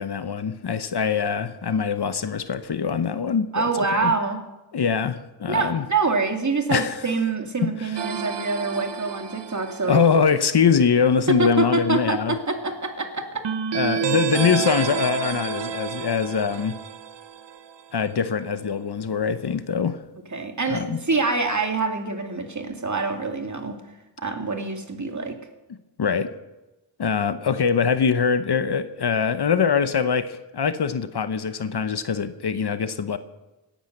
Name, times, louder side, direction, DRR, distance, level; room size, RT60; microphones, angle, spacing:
voice 1, 0.0-4.1 4.7-5.9 6.7-7.0 7.6-7.9 9.8-12.4 13.7-16.8 17.9-20.0 20.7-21.0 26.0-26.3 27.0-33.2, left 6 dB, 60° left, 1.0 m, -23 dB
voice 2, 3.5-4.4 5.5-10.0 11.3-13.4 20.3-23.8 24.2-25.4, right 3 dB, 40° right, 2.4 m, -25 dB
sound 1, 8.0-10.3 13.4-17.9, right 8 dB, 65° right, 1.0 m, -30 dB
17.5 x 10.5 x 6.7 m
cardioid pair, 50°, 45 cm